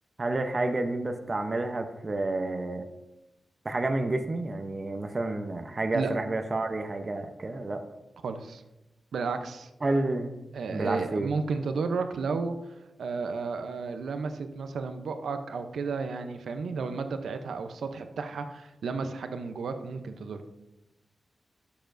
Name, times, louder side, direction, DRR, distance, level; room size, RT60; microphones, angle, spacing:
voice 1, 0.2-2.9 3.6-7.8 9.8-10.5 10.7-11.3, right 2 dB, 40° right, 6 dB, 0.8 m, -30 dB
voice 2, 8.2-8.6 9.1-9.7 10.5-12.6 13.0-20.5, right 4 dB, 85° right, 8 dB, 0.7 m, -32 dB
12.5 x 6.9 x 2.6 m, 0.95 s
cardioid pair, 65°, 0 cm